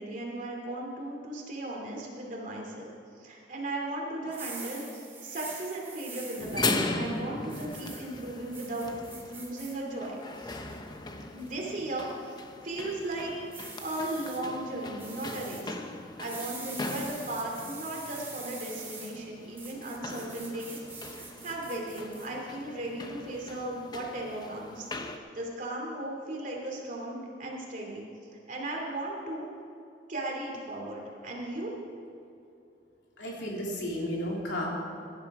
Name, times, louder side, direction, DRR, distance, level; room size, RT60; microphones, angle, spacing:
voice 1, 0.0-8.9 9.2-10.6 11.3-12.4 12.6-13.3 13.8-15.7 16.2-28.0 28.5-29.5 30.1-31.8, right 1 dB, 45° right, -1 dB, 2.8 m, -36 dB
sound 1, 4.2-6.7 7.5-8.0 8.5-9.7 10.2-10.8 11.4-11.7 13.5-14.4 15.0-15.6 16.2-19.1 19.6-22.3, right 4 dB, 15° right, 2.2 m, -44 dB
sound 2, 6.4-25.2, left 2 dB, 25° left, 0.8 m, -39 dB
voice 2, 33.2-34.7, equal, 85° left, -2 dB, 3.0 m, -33 dB
17.0 x 11.0 x 4.9 m, 2.6 s
head